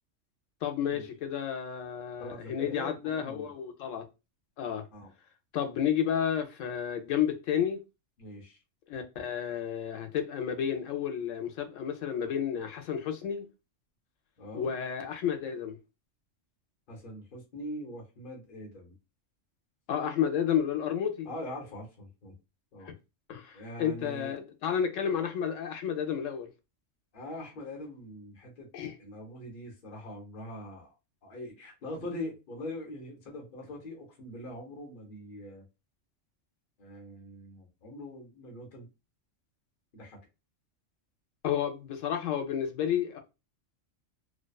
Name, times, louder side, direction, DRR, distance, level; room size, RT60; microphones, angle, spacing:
voice 1, 0.6-4.0 4.6-4.8 5.5-7.8 8.9-13.5 14.5-15.8 19.9-21.3 22.9-23.0 23.3-26.5 28.7-28.9 41.4-43.2, left 8 dB, 85° left, 0.9 m, -31 dB
voice 2, 2.2-3.5 4.9-5.1 8.2-8.6 14.4-14.7 16.9-18.9 21.2-22.3 22.7-22.9 23.5-24.4 27.1-30.9 31.2-35.6 36.8-38.9 39.9-40.2, left 1 dB, 45° left, 0.9 m, -42 dB
2.6 x 2.2 x 2.2 m
omnidirectional pair, 1.3 m